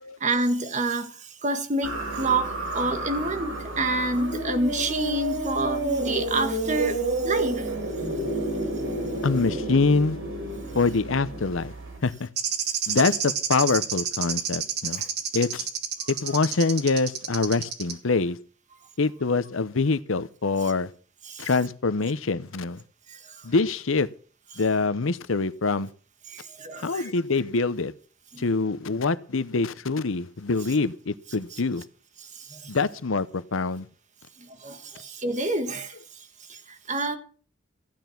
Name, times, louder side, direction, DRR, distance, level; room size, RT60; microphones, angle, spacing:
voice 1, 0.2-7.7 16.0-16.1 21.2-21.5 23.1-23.5 26.3-27.1 28.3-28.5 31.5-31.6 32.2-32.7 34.4-36.0 36.5-37.2, right 2 dB, 35° right, 1.7 m, -28 dB
sound 1, 1.8-12.0, right 2 dB, 80° right, 6.2 m, -30 dB
voice 2, 9.2-10.2 10.7-11.7 12.0-12.3 12.9-15.0 15.3-15.7 16.1-18.4 19.0-20.9 21.4-22.8 23.4-24.1 24.6-25.9 26.8-27.9 28.4-31.8 32.7-33.9, left 4 dB, 80° left, 0.8 m, -25 dB
sound 2, 12.4-17.9, right 8 dB, 55° right, 2.0 m, -28 dB
15.0 x 9.4 x 5.9 m
head